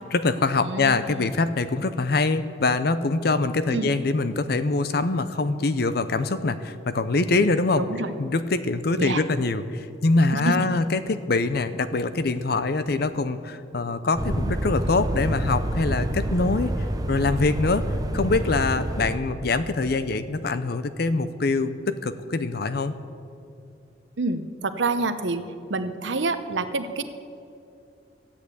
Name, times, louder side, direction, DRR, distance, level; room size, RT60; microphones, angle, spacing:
voice 1, 0.0-7.8 8.2-16.7 17.1-17.8 18.1-22.9, left 3 dB, 60° left, 12 dB, 0.6 m, -24 dB
voice 2, 0.6-1.3 3.7-3.9 7.8-8.1 9.0-9.2 10.3-10.5 24.2-25.4 25.7-27.0, right 3 dB, 90° right, 10 dB, 0.9 m, -27 dB
sound 1, 14.1-19.2, right 1 dB, 20° right, 0.7 m, -27 dB
13.5 x 8.7 x 8.3 m, 2.6 s
head